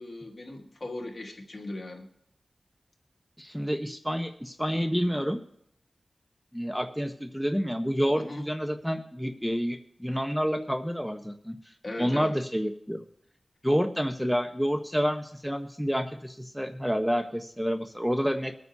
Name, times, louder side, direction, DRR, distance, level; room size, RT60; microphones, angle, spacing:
voice 1, 0.0-2.1 8.2-8.5 11.8-12.4, left 2 dB, 55° left, 0 dB, 2.5 m, -38 dB
voice 2, 3.4-5.4 6.5-11.6 12.0-13.0 13.6-18.6, equal, ahead, 5 dB, 1.1 m, -29 dB
23.5 x 9.3 x 2.9 m, 0.69 s
cardioid pair, 45°, 0 cm